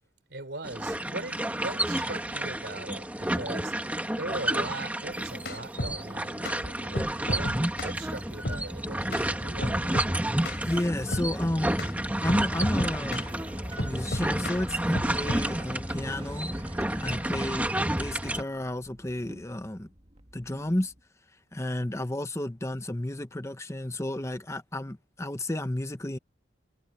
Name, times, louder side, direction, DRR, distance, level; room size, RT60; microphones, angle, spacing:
voice 1, 0.3-7.6 7.8-10.1, right 2 dB, 75° right, 3.7 m, -40 dB
sound 1, 0.6-18.4, right 1 dB, 10° right, 1.7 m, -30 dB
sound 2, 5.1-6.0 6.5-6.6 7.0-8.0 8.5-8.6 9.1-9.3 9.6-10.1 10.5-10.6 11.1-11.3 11.8-11.9 12.3-13.3 13.8-14.6 15.0-15.5, left 1 dB, 60° left, 4.9 m, -33 dB
voice 2, 10.6-11.8 12.2-13.3 13.8-16.5 17.0-17.7 18.0-19.9 20.3-20.9 21.5-26.2, left 1 dB, 15° left, 0.9 m, -31 dB
sound 3, 12.6-21.0, right 1 dB, 35° right, 2.3 m, -47 dB
head